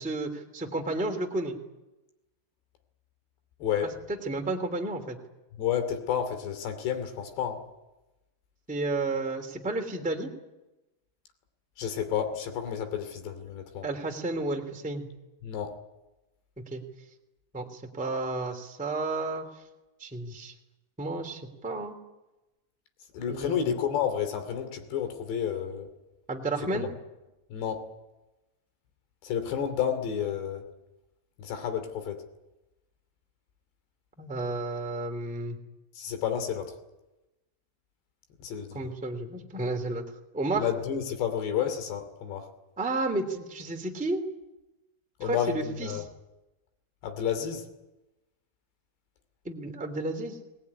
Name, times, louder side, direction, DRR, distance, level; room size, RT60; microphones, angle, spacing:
voice 1, 0.0-1.5 4.2-5.2 8.7-10.3 13.8-15.1 16.7-16.8 17.5-19.4 20.0-20.5 21.0-21.9 23.3-23.7 26.3-26.9 34.2-35.6 38.7-40.0 40.3-40.6 42.8-44.2 45.2-46.0 49.4-50.4, right 2 dB, 5° right, 3 dB, 1.5 m, -32 dB
voice 2, 3.6-3.9 5.5-7.6 11.8-13.9 15.4-15.7 23.1-25.9 26.7-26.9 27.5-27.9 29.2-30.7 31.4-32.2 35.9-36.7 38.4-38.9 40.5-42.5 45.2-46.1 47.0-47.7, left 8 dB, 60° left, 8 dB, 4.7 m, -31 dB
21.0 x 20.5 x 9.8 m, 1.0 s
omnidirectional pair, 5.7 m